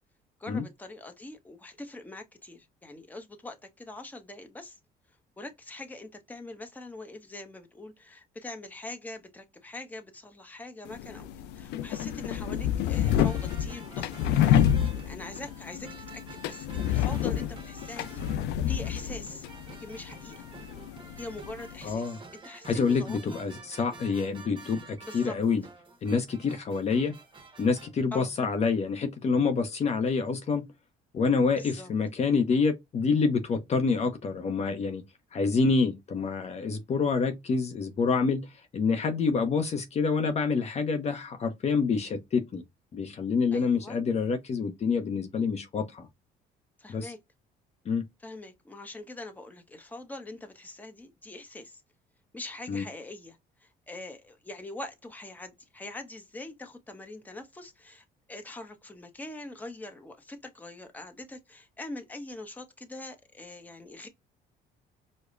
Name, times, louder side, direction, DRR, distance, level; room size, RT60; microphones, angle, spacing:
voice 1, 0.4-4.8 5.4-18.2 18.7-19.5 19.8-20.4 21.2-23.4 23.7-23.8 25.0-25.3 28.1-28.3 31.5-31.9 43.5-44.0 46.8-47.2 48.2-51.8 52.3-64.1, left 2 dB, 10° left, 0.8 m, -43 dB
sound 1, 10.9-21.9, left 10 dB, 85° left, 0.4 m, -29 dB
sound 2, 13.0-28.0, right 3 dB, 30° right, 1.1 m, -50 dB
voice 2, 21.8-22.2 22.6-25.6 26.0-27.2 27.6-30.7 31.1-35.0 35.3-42.6 42.9-46.1 46.9-47.1 47.8-48.0 52.7-52.8, left 5 dB, 40° left, 0.6 m, -27 dB
4.8 x 2.1 x 2.4 m
cardioid pair, 110°, 17 cm